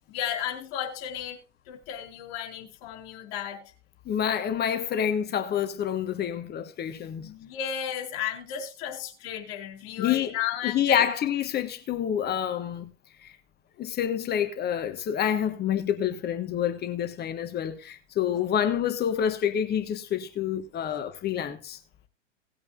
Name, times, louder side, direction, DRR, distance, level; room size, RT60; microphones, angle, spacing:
voice 1, 0.1-1.4 1.7-3.7 7.2-11.0, left 9 dB, 50° left, 4.4 m, -34 dB
voice 2, 4.1-7.3 10.0-10.3 10.6-12.9 13.2-13.3 13.8-21.8, left 9 dB, 25° left, 1.4 m, -28 dB
18.5 x 8.6 x 2.5 m
figure-of-eight pair, 95°, 36 cm